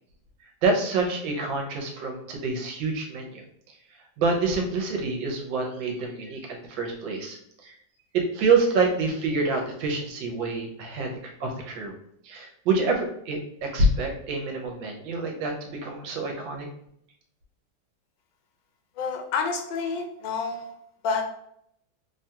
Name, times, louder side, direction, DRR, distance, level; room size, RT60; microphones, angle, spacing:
voice 1, 0.6-3.4 4.2-7.7 8.1-11.9 12.2-16.7, right 3 dB, 80° right, 2 dB, 1.4 m, -27 dB
voice 2, 19.0-20.7 21.0-21.3, left 5 dB, 85° left, 4 dB, 1.3 m, -28 dB
3.3 x 2.3 x 2.7 m, 0.73 s
omnidirectional pair, 2.0 m